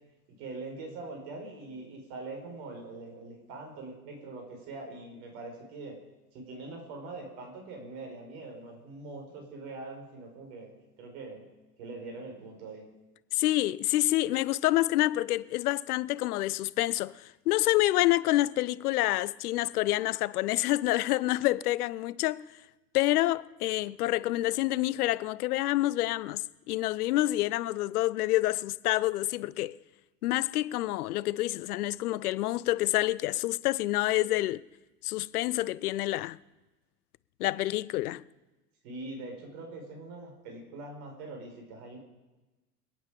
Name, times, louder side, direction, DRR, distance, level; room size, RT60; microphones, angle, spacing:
voice 1, 0.4-6.0 6.3-10.7 11.0-11.4 11.8-12.9 38.1-38.2 38.8-42.0, right 3 dB, 55° right, 5.7 m, -43 dB
voice 2, 13.3-22.5 22.9-29.8 30.2-34.6 35.0-36.4 37.4-38.2, left 16 dB, 65° left, 0.7 m, -28 dB
26.5 x 8.9 x 5.2 m
hypercardioid pair, 95°, 49 cm